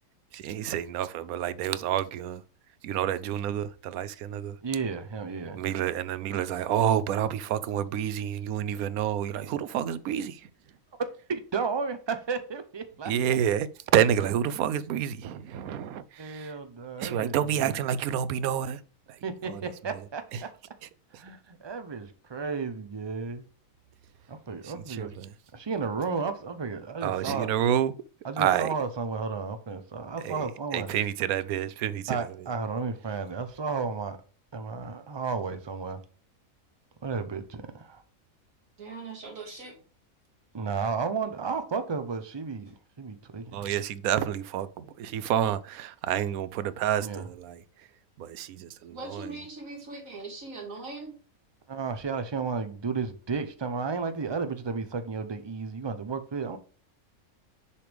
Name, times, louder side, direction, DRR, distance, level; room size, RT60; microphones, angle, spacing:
voice 1, 0.3-2.4 2.8-4.6 5.5-10.5 13.1-13.7 13.9-16.5 17.0-18.8 19.1-19.2 19.4-19.6 19.9-20.0 20.3-20.4 21.1-21.2 24.6-25.3 27.0-27.9 28.4-28.8 30.2-32.5 43.5-47.6 48.2-49.4, right 10 dB, 85° right, 1.1 m, -29 dB
voice 2, 4.6-5.6 11.3-13.1 16.2-17.8 19.2-20.5 21.2-23.5 24.3-25.1 25.5-27.5 28.2-30.9 32.1-34.2 34.5-36.0 37.0-38.0 40.5-43.6 47.0-47.2 51.7-56.6, right 5 dB, 25° right, 0.6 m, -33 dB
voice 3, 38.8-39.8 48.9-51.1, right 3 dB, 65° right, 2.4 m, -40 dB
6.9 x 5.0 x 3.4 m
omnidirectional pair, 1.5 m